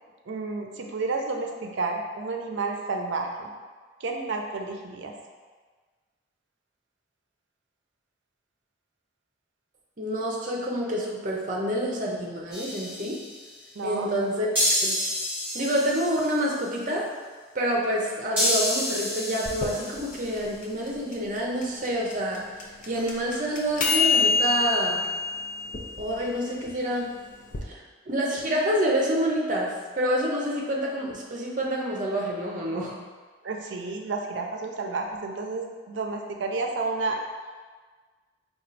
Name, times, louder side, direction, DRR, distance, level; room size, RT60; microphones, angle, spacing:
voice 1, 0.3-3.5 4.0-5.1 13.7-14.1 33.4-37.2, right 3 dB, 80° right, 2 dB, 0.5 m, -31 dB
voice 2, 10.0-13.2 13.8-15.0 15.5-17.1 17.5-22.4 22.9-25.0 26.0-27.1 27.7-33.0, equal, 45° right, -2 dB, 0.7 m, -28 dB
sound 1, 12.5-13.4 14.6-16.5 18.4-20.3, equal, 10° right, 1.4 m, -28 dB
sound 2, 19.5-27.6, left 4 dB, 45° left, 0.5 m, -28 dB
4.3 x 2.4 x 4.0 m, 1.4 s
head